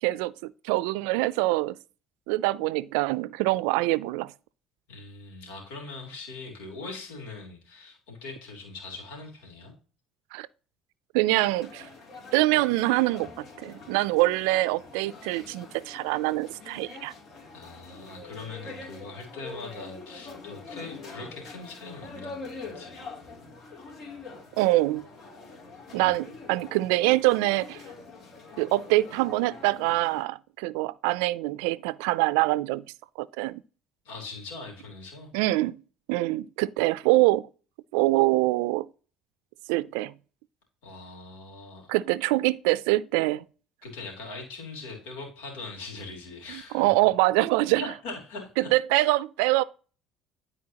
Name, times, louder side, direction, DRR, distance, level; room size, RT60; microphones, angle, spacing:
voice 1, 0.0-1.8 2.3-4.3 10.3-10.5 11.1-11.9 12.3-17.1 24.6-25.1 25.9-27.8 28.6-32.8 33.2-33.6 35.3-35.8 36.1-37.5 37.9-38.9 39.7-40.1 41.9-43.4 46.5-47.8 48.6-49.6, right 19 dB, 85° right, 0.3 m, -24 dB
voice 2, 4.9-9.7 17.5-23.0 25.9-26.1 34.0-35.3 40.8-41.9 43.8-46.9 47.8-48.7, left 3 dB, 90° left, 3.1 m, -41 dB
sound 1, 11.4-30.2, left 4 dB, 55° left, 3.0 m, -44 dB
12.0 x 4.4 x 2.9 m
supercardioid pair, 85°, 0 cm